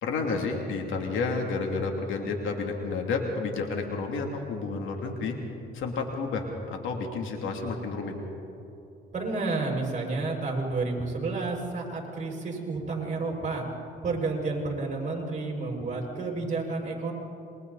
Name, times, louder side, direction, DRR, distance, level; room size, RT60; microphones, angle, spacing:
voice 1, 0.0-5.3 5.7-8.1, left 4 dB, 80° left, 2 dB, 3.1 m, -30 dB
voice 2, 9.1-13.6 14.0-17.1, right 3 dB, 35° right, -1 dB, 6.3 m, -30 dB
27.5 x 23.0 x 4.2 m, 2.8 s
cardioid pair, 90°, 20 cm